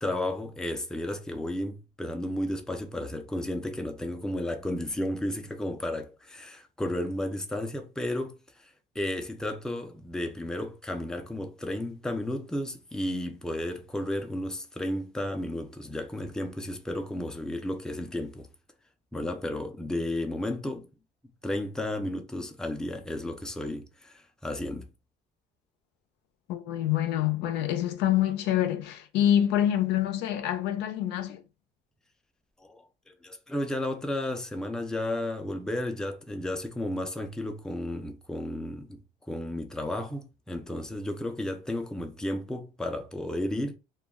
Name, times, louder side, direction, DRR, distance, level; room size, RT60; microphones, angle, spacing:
voice 1, 0.0-8.4 8.6-18.5 19.1-20.9 21.4-24.8 32.6-39.0 39.3-43.8, left 1 dB, 5° left, 0.4 m, -33 dB
voice 2, 26.5-31.4, left 11 dB, 85° left, 0.5 m, -26 dB
2.3 x 2.1 x 3.5 m
cardioid pair, 110°, 17 cm